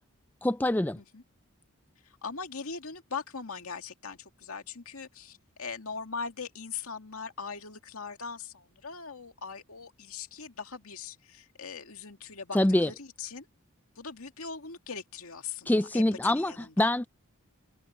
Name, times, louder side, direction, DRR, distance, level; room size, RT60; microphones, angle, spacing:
voice 1, 0.4-1.0 12.5-12.9 15.7-17.1, left 1 dB, 10° left, 0.3 m, -25 dB
voice 2, 2.2-13.5 14.0-16.9, left 5 dB, 80° left, 2.2 m, -40 dB
head